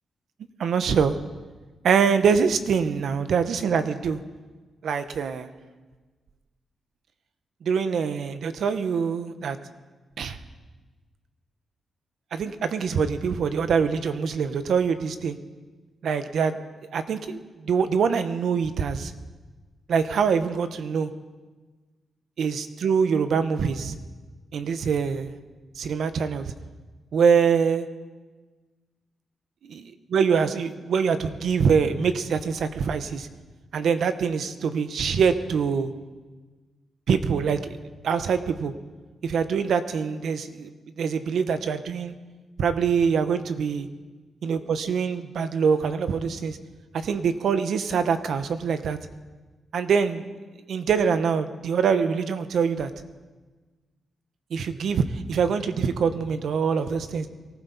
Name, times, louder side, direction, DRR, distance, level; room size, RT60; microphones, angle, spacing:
voice 1, 0.6-1.1 1.8-4.2 4.8-5.5 7.6-9.6 10.2-10.4 12.3-15.4 16.0-16.6 16.9-19.1 19.9-21.1 22.4-23.9 24.5-25.3 25.8-26.5 27.1-27.9 29.6-33.3 33.7-35.9 37.1-37.8 38.0-38.7 39.2-42.1 42.6-43.9 44.4-46.6 46.9-49.0 49.7-50.3 50.7-52.9 54.5-57.3, right 6 dB, 75° right, 10 dB, 1.0 m, -24 dB
23.0 x 15.0 x 4.1 m, 1.3 s
cardioid pair, 105°, 0 cm